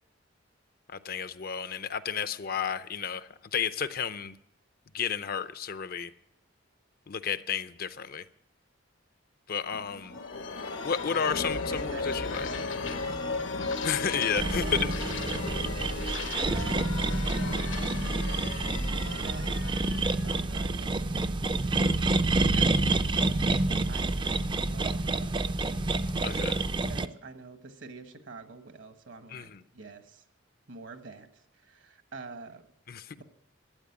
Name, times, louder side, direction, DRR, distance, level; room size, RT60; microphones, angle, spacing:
voice 1, 0.9-4.3 4.9-6.1 7.1-8.2 9.5-10.2 10.8-12.5 13.8-14.6 26.2-26.6 29.3-29.6 32.9-33.1, left 7 dB, 50° left, 13 dB, 0.5 m, -32 dB
sound 1, 9.7-21.2, left 3 dB, 75° left, 1.1 m, -35 dB
voice 2, 11.0-13.2 14.6-17.2 19.0-23.2 23.9-25.5 26.7-30.2 30.7-32.7, right 3 dB, 70° right, 8 dB, 1.3 m, -47 dB
sound 2, 14.4-27.1, right 2 dB, 25° right, 0.4 m, -28 dB
12.5 x 8.9 x 8.5 m, 0.77 s
head